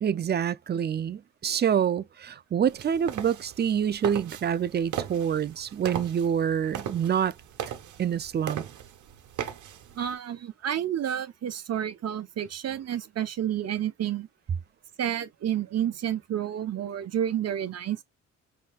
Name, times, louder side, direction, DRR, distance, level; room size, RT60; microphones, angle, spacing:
voice 1, 0.0-7.3 8.0-8.6, right 8 dB, 35° right, 0.5 m, -26 dB
sound 1, 2.7-10.1, right 10 dB, 75° right, 1.2 m, -38 dB
voice 2, 9.9-14.3 15.0-18.0, right 10 dB, 55° right, 1.0 m, -30 dB
5.5 x 4.0 x 2.4 m
cardioid pair, 90°, 30 cm